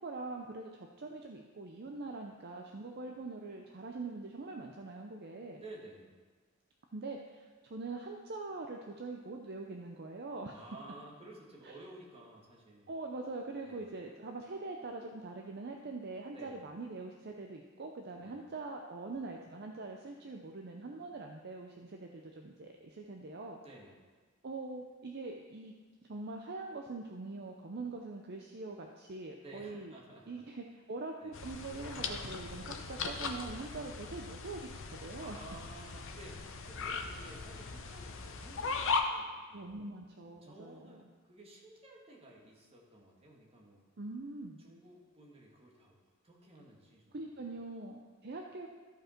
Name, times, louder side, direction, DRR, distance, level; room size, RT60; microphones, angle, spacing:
voice 1, 0.0-5.6 6.9-10.6 12.9-23.6 24.4-25.7 26.1-29.9 30.3-34.7 35.0-35.4 39.5-41.0 44.0-44.6 47.1-48.7, right 3 dB, 50° right, 2 dB, 0.6 m, -43 dB
voice 2, 5.6-6.1 10.5-12.9 13.6-13.9 16.3-16.6 18.2-18.4 23.6-24.0 29.4-30.4 30.7-30.8 31.2-31.4 35.2-39.7 40.4-43.8 44.6-46.0 46.2-47.5, right 2 dB, 25° right, -2 dB, 1.7 m, -53 dB
sound 1, 31.3-39.0, left 4 dB, 65° left, 0.8 m, -39 dB
13.5 x 5.2 x 4.4 m, 1.4 s
head